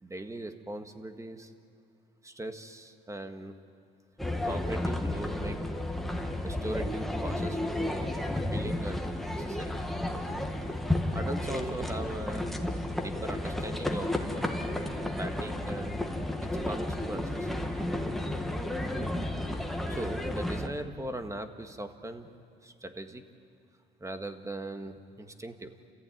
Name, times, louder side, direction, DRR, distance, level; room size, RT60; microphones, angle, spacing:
voice 1, 0.0-1.5 2.2-3.5 4.4-5.6 6.4-8.1 8.5-9.7 11.1-12.5 13.0-14.1 15.2-16.1 16.4-17.5 19.9-22.3 22.6-23.2 24.0-25.7, right 1 dB, 15° right, 7 dB, 1.6 m, -39 dB
sound 1, 4.2-20.7, left 1 dB, ahead, 1.8 m, -32 dB
29.5 x 14.5 x 9.3 m, 2.4 s
cardioid pair, 100°, 21 cm